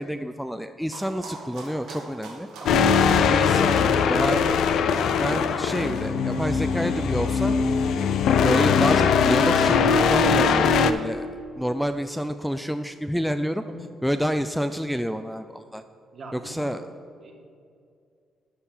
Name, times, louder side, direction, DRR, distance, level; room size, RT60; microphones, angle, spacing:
voice 1, 0.0-2.5 3.2-4.6 5.2-7.5 8.4-11.3 11.6-13.6 14.0-15.8 16.3-16.8, equal, ahead, 8 dB, 0.3 m, -28 dB
sound 1, 0.9-10.0, right 3 dB, 90° right, 1.6 m, -45 dB
voice 2, 2.6-2.9 3.4-4.2 13.7-13.8 16.1-16.8 17.2-17.3, right 2 dB, 50° right, 2 dB, 1.6 m, -41 dB
sound 2, 2.7-10.9, left 6 dB, 75° left, 0.5 m, -21 dB
12.0 x 4.7 x 5.6 m, 2.3 s
cardioid pair, 90°, 0 cm